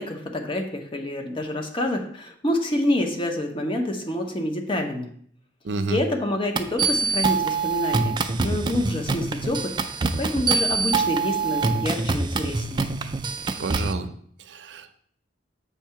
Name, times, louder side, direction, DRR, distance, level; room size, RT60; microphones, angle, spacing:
voice 1, 0.0-5.1 5.9-8.2 8.4-12.8, left 1 dB, 30° left, 3 dB, 0.9 m, -27 dB
voice 2, 5.6-6.0 13.6-14.1 14.5-15.0, right 3 dB, 85° right, 9 dB, 0.5 m, -29 dB
sound 1, 6.6-13.9, right 4 dB, 25° right, 0.4 m, -25 dB
7.0 x 2.8 x 5.6 m, 0.63 s
head